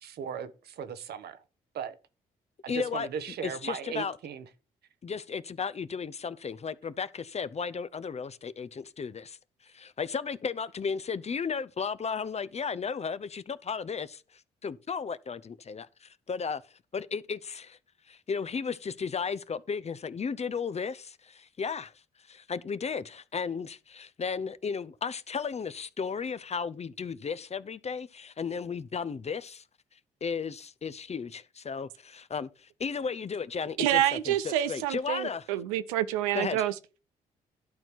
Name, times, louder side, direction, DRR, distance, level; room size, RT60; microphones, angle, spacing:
voice 1, 0.0-1.4 1.7-2.0 2.6-4.4, right 7 dB, 65° right, 1.2 m, -37 dB
voice 2, 2.7-3.1 3.4-4.2 5.0-9.4 9.6-14.2 14.6-16.6 16.9-17.8 18.1-21.9 22.3-29.6 30.2-35.5 36.3-36.7, left 5 dB, 35° left, 0.7 m, -34 dB
voice 3, 33.8-36.7, right 12 dB, 85° right, 0.6 m, -27 dB
12.0 x 4.5 x 5.9 m
hypercardioid pair, 45°, 18 cm